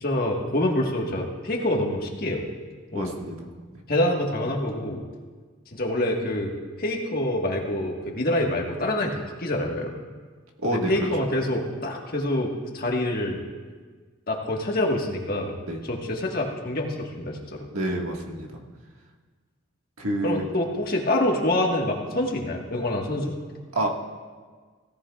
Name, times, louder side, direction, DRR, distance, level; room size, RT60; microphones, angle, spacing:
voice 1, 0.0-2.4 2.9-3.1 3.9-5.0 5.8-6.5 6.8-9.9 10.7-13.4 14.3-15.5 15.9-17.7 20.2-23.3, left 1 dB, 45° left, 0 dB, 1.5 m, -26 dB
voice 2, 2.9-3.4 10.6-10.9 15.6-15.8 17.7-18.5 20.0-20.5 23.7-23.9, right 1 dB, 90° right, 0 dB, 1.7 m, -27 dB
17.0 x 14.0 x 2.4 m, 1.5 s
head